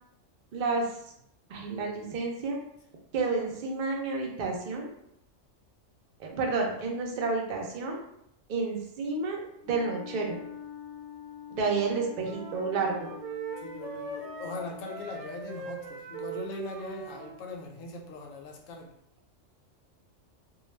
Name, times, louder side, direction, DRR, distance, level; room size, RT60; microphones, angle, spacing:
voice 1, 0.5-0.9 1.5-2.6 3.1-4.9 6.2-8.0 8.5-10.4 11.5-13.1, right 4 dB, 55° right, 0 dB, 0.6 m, -30 dB
Wind instrument woodwind instrument, 9.6-15.0, left 9 dB, 40° left, 0.7 m, -45 dB
sound 1, 12.2-17.4, right 4 dB, 85° right, 1.0 m, -41 dB
voice 2, 13.6-19.0, left 2 dB, 90° left, 2 dB, 1.0 m, -40 dB
2.2 x 2.2 x 3.1 m, 0.74 s
omnidirectional pair, 1.3 m